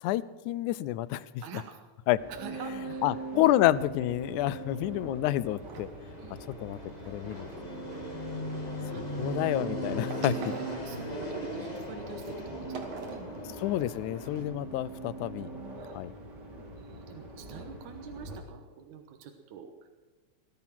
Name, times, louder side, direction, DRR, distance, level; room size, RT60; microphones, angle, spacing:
voice 1, 0.0-1.3 2.1-2.2 3.0-5.9 6.6-6.8 7.1-7.5 9.0-10.5 13.6-15.5 15.9-16.1, left 15 dB, 85° left, 18 dB, 2.0 m, -28 dB
voice 2, 1.4-1.8 2.3-3.5 6.2-6.4 8.9-9.0 10.3-13.5 15.7-16.0 16.8-19.9, right 7 dB, 85° right, 5 dB, 2.6 m, -46 dB
sound 1, 2.2-18.4, right 3 dB, 35° right, 2.9 m, -42 dB
Fixed-wing aircraft airplane, 4.2-14.4, left 1 dB, 15° left, 1.8 m, -40 dB
sound 2, 5.6-6.0 6.7-8.6 10.1-11.2 11.8-11.9 12.2-12.3 12.7-13.4, right 5 dB, 60° right, 2.3 m, -46 dB
18.5 x 12.0 x 6.0 m, 1.3 s
omnidirectional pair, 3.4 m